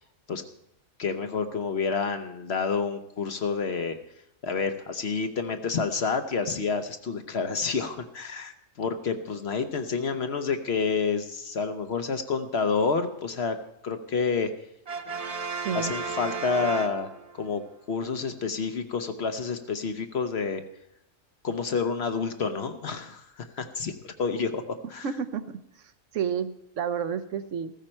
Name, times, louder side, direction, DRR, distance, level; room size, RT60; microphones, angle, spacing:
voice 1, 1.0-4.0 4.4-13.6 13.8-14.5 15.7-17.1 17.4-17.6 17.9-20.6 21.4-25.1, left 5 dB, 55° left, 8 dB, 1.0 m, -29 dB
Brass instrument, 14.9-17.5, right 4 dB, 40° right, 0.5 m, -34 dB
voice 2, 15.6-15.9 25.0-25.4 26.1-27.7, right 7 dB, 65° right, 11 dB, 1.1 m, -30 dB
14.5 x 14.5 x 4.4 m, 0.76 s
omnidirectional pair, 1.4 m